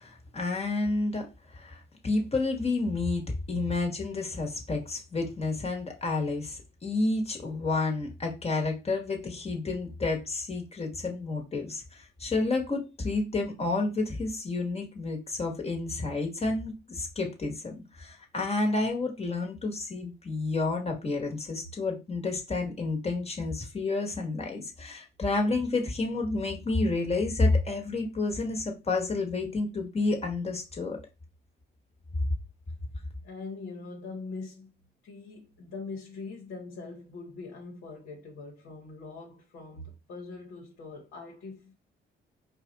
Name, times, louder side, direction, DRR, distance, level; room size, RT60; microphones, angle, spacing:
voice 1, 0.0-31.0, left 3 dB, 30° left, 1.4 m, -30 dB
voice 2, 33.2-34.7 35.0-41.7, left 3 dB, 75° left, 1.2 m, -42 dB
4.7 x 2.4 x 3.9 m
cardioid pair, 90°, 20 cm